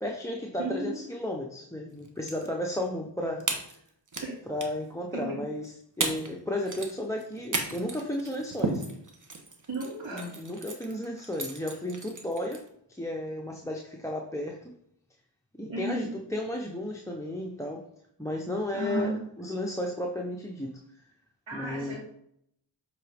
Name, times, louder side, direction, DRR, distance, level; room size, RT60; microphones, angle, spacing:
voice 1, 0.0-3.6 4.5-5.7 6.0-8.8 10.4-12.6 12.9-14.7 15.6-17.8 18.2-19.1 19.4-21.0 21.5-21.9, left 1 dB, 5° left, 1 dB, 0.8 m, -33 dB
voice 2, 0.6-1.0 4.2-4.3 5.1-5.2 9.7-10.3 15.7-16.1 18.7-19.1 21.5-22.0, right 2 dB, 75° right, -9 dB, 2.5 m, -33 dB
sound 1, 2.0-2.5 2.8-2.9 3.4-4.3 4.6-4.9 5.6-5.7 6.0-6.4 6.6-12.7, right 3 dB, 40° right, 1.1 m, -35 dB
7.5 x 4.0 x 3.5 m, 0.71 s
cardioid pair, 50°, 46 cm